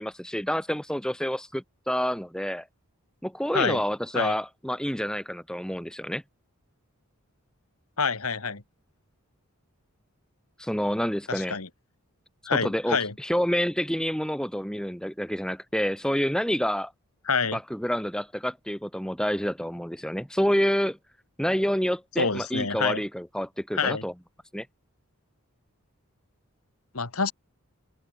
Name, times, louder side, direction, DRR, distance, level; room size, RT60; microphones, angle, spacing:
voice 1, 0.0-2.7 3.2-6.2 10.6-11.6 12.5-16.9 17.5-21.0 21.4-24.1 24.5-24.7, equal, 5° left, 2.8 m, -28 dB
voice 2, 8.0-8.6 11.3-11.7 12.5-13.1 17.3-17.6 22.2-23.0 23.7-24.0 26.9-27.3, left 5 dB, 80° left, 2.3 m, -27 dB
head